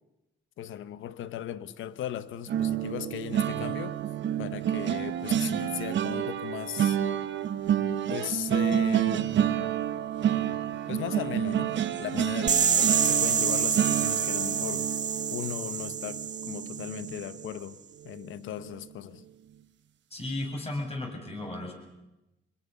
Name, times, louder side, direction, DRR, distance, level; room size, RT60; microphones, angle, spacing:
voice 1, 0.6-4.0 4.4-7.0 8.1-9.3 10.9-11.7 12.0-14.9 15.3-17.8 18.0-19.2, left 11 dB, 80° left, 1.0 m, -37 dB
sound 1, 2.5-17.6 18.0-18.3 18.6-18.8, right 10 dB, 65° right, 1.5 m, -29 dB
sound 2, 12.5-17.3, right 7 dB, 40° right, 0.9 m, -27 dB
voice 2, 20.1-21.7, left 2 dB, 30° left, 7.4 m, -34 dB
26.0 x 21.5 x 7.0 m
cardioid pair, 90°, 20 cm